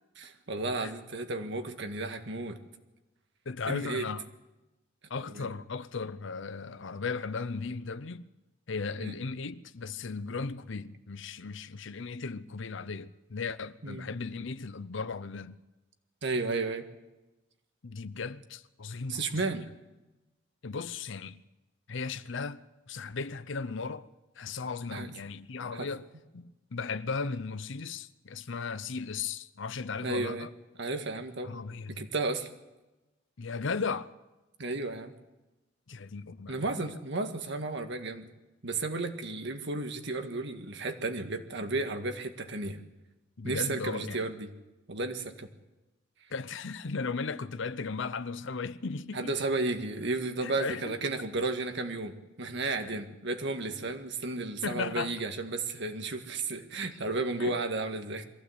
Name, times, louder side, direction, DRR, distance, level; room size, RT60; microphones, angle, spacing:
voice 1, 0.2-2.6 3.7-4.0 5.3-5.5 9.0-9.1 13.8-14.0 16.2-16.8 19.1-19.7 24.9-25.1 25.7-25.9 30.0-30.5 30.8-31.5 32.0-32.5 34.6-35.1 36.5-38.3 38.6-42.8 43.4-44.5 44.9-45.5 49.1-58.2, right 3 dB, 65° right, 1.8 m, -33 dB
voice 2, 3.5-4.3 5.1-8.3 8.7-15.6 17.8-19.5 20.6-21.4 21.9-24.1 24.4-26.1 26.3-30.5 31.4-32.1 33.4-34.1 35.9-36.8 43.4-44.3 46.3-49.4 50.4-51.1 52.8-53.0 54.6-55.1 56.8-57.0 57.4-57.6, left 4 dB, 70° left, 0.7 m, -36 dB
22.5 x 15.5 x 8.1 m
head